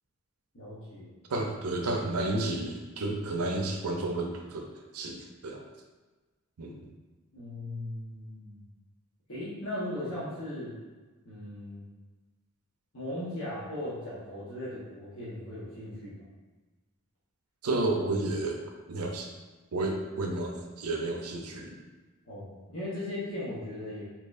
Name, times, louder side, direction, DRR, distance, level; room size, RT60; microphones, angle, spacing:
voice 1, 0.5-1.1 7.3-8.6 9.3-10.7 11.2-11.9 12.9-16.3 22.3-24.1, left 1 dB, 60° left, -10 dB, 1.0 m, -38 dB
voice 2, 1.3-4.7 4.9-5.6 6.6-6.8 17.6-18.6 18.9-19.3 19.7-21.8, right 2 dB, 85° right, 2 dB, 0.6 m, -31 dB
4.3 x 2.8 x 2.5 m, 1.3 s
head